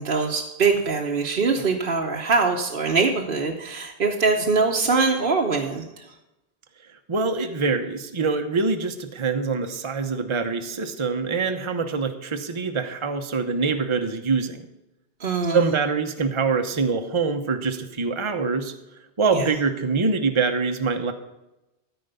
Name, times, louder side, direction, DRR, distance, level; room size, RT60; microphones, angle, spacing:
voice 1, 0.0-6.1 15.2-15.7 19.3-19.5, right 4 dB, 50° right, 0 dB, 1.1 m, -23 dB
voice 2, 7.1-14.6 15.5-18.7 19.2-21.1, right 4 dB, 30° right, 6 dB, 0.8 m, -24 dB
13.5 x 4.9 x 6.7 m, 0.95 s
omnidirectional pair, 1.2 m